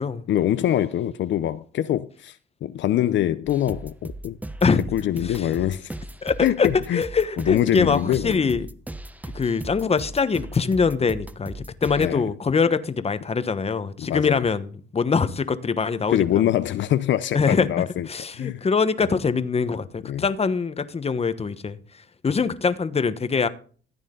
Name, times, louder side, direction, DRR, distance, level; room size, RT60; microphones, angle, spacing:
voice 1, 0.3-4.4 4.9-5.9 6.4-7.0 7.5-8.5 12.0-12.3 14.0-14.4 16.1-18.1 18.4-18.6 20.0-20.2, left 12 dB, 70° left, 0.6 m, -24 dB
sound 1, 3.5-12.1, right 1 dB, 10° right, 0.9 m, -37 dB
voice 2, 6.2-8.7 9.3-16.4 17.3-17.7 18.1-21.8 22.2-23.5, left 5 dB, 30° left, 1.2 m, -23 dB
15.0 x 9.1 x 3.8 m
cardioid pair, 90°, 20 cm